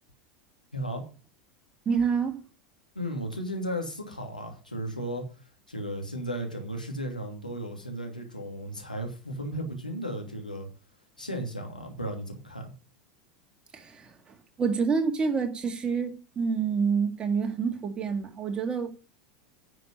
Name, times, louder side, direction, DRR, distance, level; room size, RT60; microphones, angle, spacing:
voice 1, 0.7-1.0 2.9-5.2 5.7-10.7 11.2-12.7, equal, 85° left, 2.7 m, -35 dB
voice 2, 1.9-2.4 13.7-18.9, right 5 dB, 20° right, 2.3 m, -28 dB
10.0 x 6.9 x 7.6 m
figure-of-eight pair, 80°, 4 cm